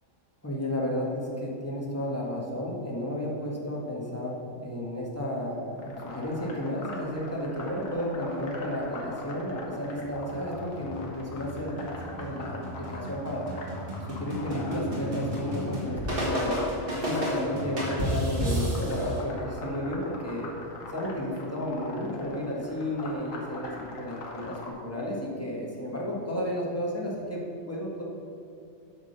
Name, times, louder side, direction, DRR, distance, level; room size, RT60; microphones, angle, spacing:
voice 1, 0.4-13.5 14.0-16.6 17.0-20.5 20.9-28.0, left 1 dB, 10° left, -4 dB, 1.3 m, -32 dB
sound 1, 5.8-24.7, left 2 dB, 75° left, 1.5 m, -42 dB
sound 2, 9.9-19.2, equal, 45° right, 2.1 m, -33 dB
8.9 x 3.8 x 6.6 m, 2.6 s
omnidirectional pair, 1.4 m